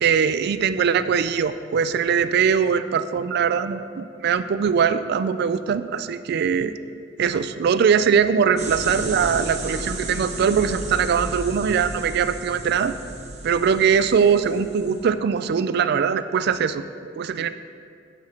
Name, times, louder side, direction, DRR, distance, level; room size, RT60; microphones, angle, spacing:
voice 1, 0.0-6.7 7.2-13.0 13.4-16.8 17.2-17.5, right 7 dB, 60° right, 13 dB, 0.3 m, -21 dB
sound 1, 8.6-15.0, right 2 dB, 35° right, 1.0 m, -33 dB
9.3 x 4.9 x 4.3 m, 2.3 s
head